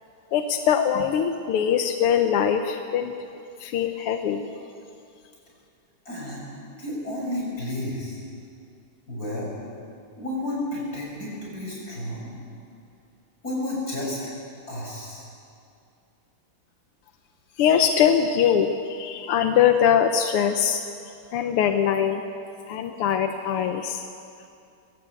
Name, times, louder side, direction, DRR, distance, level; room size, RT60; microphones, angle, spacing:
voice 1, 0.3-3.1 3.6-4.5 17.6-20.8 21.3-22.2 22.7-24.0, left 8 dB, 90° left, 6 dB, 1.8 m, -22 dB
voice 2, 6.1-6.4 6.8-8.2 9.1-9.5 10.2-12.3 13.4-14.2 14.7-15.3, left 1 dB, 40° left, -3 dB, 6.9 m, -31 dB
22.5 x 17.0 x 8.2 m, 2.5 s
omnidirectional pair, 2.4 m